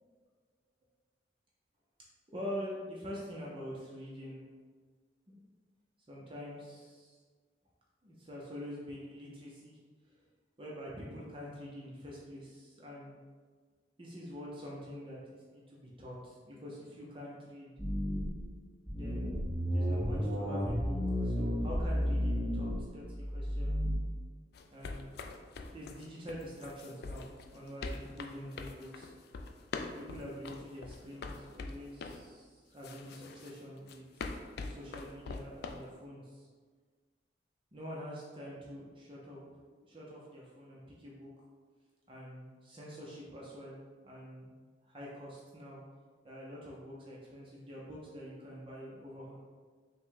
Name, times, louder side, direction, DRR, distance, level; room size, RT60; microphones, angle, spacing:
voice 1, 2.3-4.4 5.3-5.4 6.1-7.2 8.0-9.8 10.6-13.2 14.0-15.2 15.5-17.7 18.9-23.7 24.7-25.1 25.7-29.1 30.0-34.2 34.6-36.5 37.7-41.3 42.1-43.8 44.0-44.5 44.9-45.8 46.2-49.4, equal, 30° right, -4 dB, 0.6 m, -45 dB
sound 1, 17.8-18.4 18.9-23.9, equal, ahead, 0.8 m, -32 dB
sound 2, 24.5-32.2 32.8-35.8, left 3 dB, 60° left, 0.3 m, -43 dB
5.4 x 2.2 x 3.8 m, 1.5 s
head